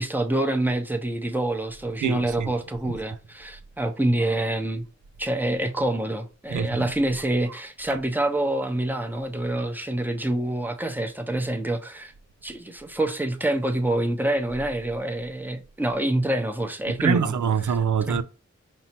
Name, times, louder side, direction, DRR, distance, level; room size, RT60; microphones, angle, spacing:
voice 1, 0.0-4.8 5.2-12.1 12.4-17.3 17.7-17.8 18.0-18.2, right 1 dB, 5° right, 0.7 m, -26 dB
voice 2, 2.0-2.5 2.8-3.0 6.5-6.9 7.9-8.0 16.9-18.2, right 7 dB, 85° right, 0.5 m, -25 dB
5.5 x 2.0 x 4.3 m
wide cardioid pair, 75°, 29 cm